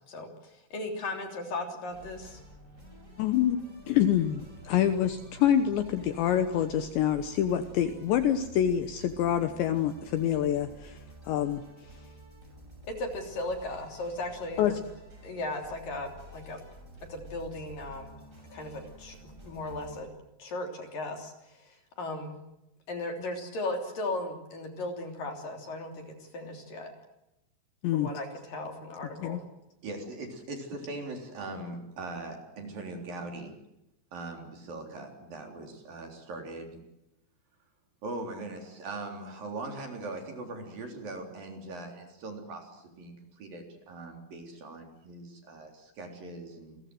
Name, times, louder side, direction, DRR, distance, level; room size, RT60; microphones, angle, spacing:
voice 1, 0.1-2.4 12.9-14.8 15.2-16.6 17.1-18.1 18.5-19.2 19.4-20.1 20.4-22.4 22.9-26.9 27.9-29.4, left 2 dB, 45° left, 4 dB, 4.4 m, -36 dB
sound 1, 1.9-20.0, right 1 dB, 15° right, 6.1 m, -50 dB
voice 2, 3.2-3.6 3.9-11.0 11.3-11.6 14.6-14.7 27.8-28.1 29.2-29.4, left 10 dB, 70° left, 9 dB, 3.0 m, -26 dB
voice 3, 29.8-33.5 34.1-36.8 38.0-46.8, right 2 dB, 45° right, 3 dB, 5.0 m, -40 dB
30.0 x 22.0 x 7.8 m, 0.88 s
omnidirectional pair, 6.0 m